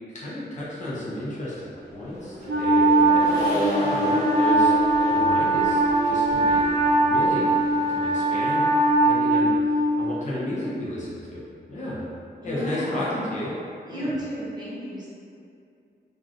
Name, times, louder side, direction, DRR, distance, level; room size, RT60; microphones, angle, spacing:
voice 1, 0.1-3.5 3.8-4.7 5.1-6.6 6.9-8.7 9.0-11.4 11.7-12.0 12.4-13.5 13.9-14.1, left 1 dB, 45° left, -9 dB, 0.6 m, -33 dB
Accelerating revving vroom, 1.8-8.4, equal, 20° left, 1.0 m, -30 dB
Wind instrument woodwind instrument, 2.5-10.0, right 2 dB, 70° right, 0.5 m, -21 dB
voice 2, 12.4-13.2 13.8-15.1, equal, 20° right, -10 dB, 0.8 m, -33 dB
3.1 x 2.4 x 2.5 m, 2.5 s
wide cardioid pair, 155°, 18 cm